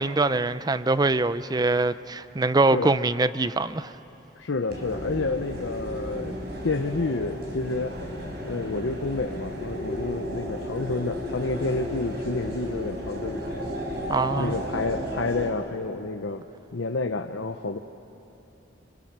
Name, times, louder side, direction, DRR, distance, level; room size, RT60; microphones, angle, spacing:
voice 1, 0.0-3.9 14.1-14.5, right 3 dB, 20° right, 0.5 m, -23 dB
voice 2, 4.4-6.4 6.6-7.9 8.4-13.7 14.4-16.4 16.7-17.8, left 3 dB, 90° left, 0.8 m, -29 dB
sound 1, 4.7-15.5, equal, 60° right, 4.2 m, -33 dB
28.5 x 25.0 x 6.7 m
head